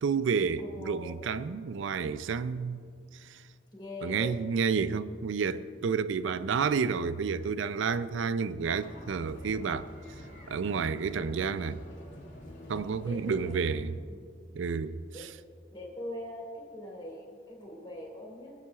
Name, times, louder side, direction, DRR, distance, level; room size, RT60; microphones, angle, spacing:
voice 1, 0.0-2.8 3.2-3.4 4.0-9.9 10.5-11.8 12.7-13.9 14.5-15.0, right 5 dB, 70° right, 0.4 m, -30 dB
voice 2, 0.6-1.1 3.7-4.4 13.0-13.5 14.1-14.2 15.1-15.2 15.7-18.6, left 1 dB, 25° left, 2.9 m, -42 dB
sound 1, 8.8-13.8, left 1 dB, 65° left, 2.5 m, -47 dB
23.5 x 9.5 x 2.4 m
head